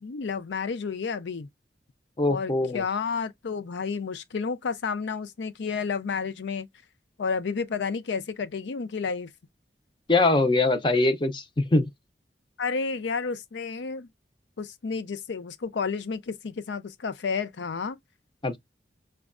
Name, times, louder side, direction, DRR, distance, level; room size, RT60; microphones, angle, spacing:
voice 1, 0.0-1.5 2.3-6.7 7.2-9.3 12.6-14.1 14.6-18.0, left 5 dB, 75° left, 0.5 m, -31 dB
voice 2, 2.2-2.8 10.1-11.9 18.4-18.6, left 2 dB, 25° left, 0.6 m, -22 dB
6.0 x 2.2 x 2.4 m
head